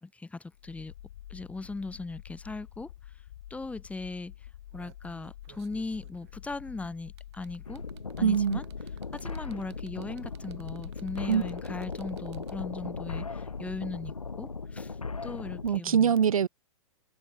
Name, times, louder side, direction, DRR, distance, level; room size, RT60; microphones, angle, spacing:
voice 1, 0.0-0.9 1.3-3.1 3.5-4.3 4.7-7.8 8.2-8.6 9.1-15.0 15.2-16.1, left 3 dB, 5° left, 2.2 m, -38 dB
sound 1, 0.5-15.3, left 12 dB, 55° left, 1.4 m, -48 dB
sound 2, 3.2-3.3 3.6-3.9 4.4-12.8 14.0-14.1, right 15 dB, 50° right, 5.9 m, -59 dB
sound 3, 7.7-15.8, left 4 dB, 85° left, 0.9 m, -38 dB
voice 2, 8.2-8.6 11.3-11.4 15.6-16.5, right 8 dB, 80° right, 0.4 m, -23 dB
figure-of-eight pair, 100°, 18 cm